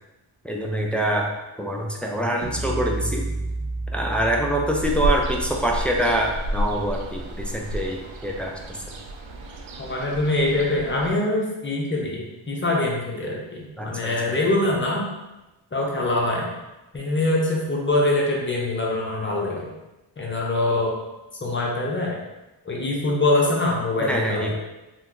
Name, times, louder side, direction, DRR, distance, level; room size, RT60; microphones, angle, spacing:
voice 1, 0.4-1.3 1.6-3.3 3.9-9.0 13.8-14.4 24.0-24.6, right 1 dB, 5° left, -1 dB, 0.3 m, -25 dB
sound 1, 2.4-8.4, right 2 dB, 35° right, 0.6 m, -33 dB
Ocean, 4.8-11.1, equal, 75° right, 0.6 m, -31 dB
voice 2, 9.8-15.1 15.7-16.5 16.9-19.7 20.2-21.0 21.4-22.2 22.6-24.6, left 2 dB, 25° left, -2 dB, 0.7 m, -24 dB
2.8 x 2.2 x 3.7 m, 1.0 s
cardioid pair, 85°, 49 cm